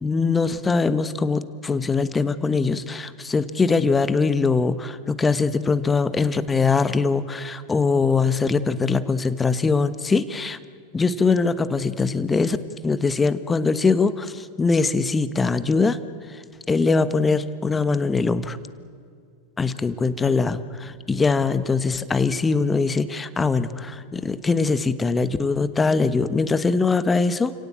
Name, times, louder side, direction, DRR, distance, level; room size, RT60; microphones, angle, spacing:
voice 1, 0.0-10.6 10.9-12.6 12.8-16.0 16.3-16.4 16.7-18.6 19.6-27.5, left 4 dB, 15° left, 14 dB, 1.2 m, -22 dB
29.0 x 17.5 x 8.8 m, 2.4 s
figure-of-eight pair, 90°, 0 cm